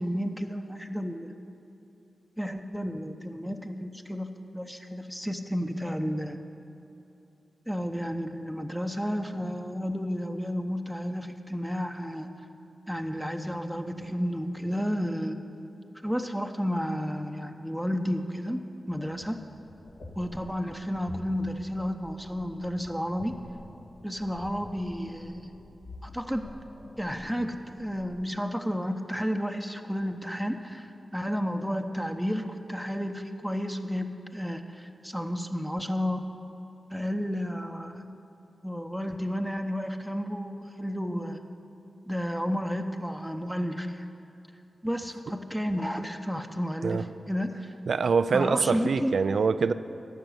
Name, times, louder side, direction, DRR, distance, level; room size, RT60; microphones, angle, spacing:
voice 1, 0.0-1.3 2.4-6.4 7.7-12.3 12.9-15.4 16.0-19.4 20.2-23.4 24.0-25.5 26.0-26.5 27.0-36.3 36.9-38.1 38.6-41.4 42.1-44.1 44.8-47.7 48.3-49.1, equal, ahead, 5 dB, 0.9 m, -32 dB
sound 1, 18.9-28.2, left 1 dB, 70° left, 2.2 m, -48 dB
voice 2, 47.9-49.7, right 5 dB, 75° right, 13 dB, 0.4 m, -24 dB
13.0 x 5.9 x 9.4 m, 2.9 s
cardioid pair, 45°, 0 cm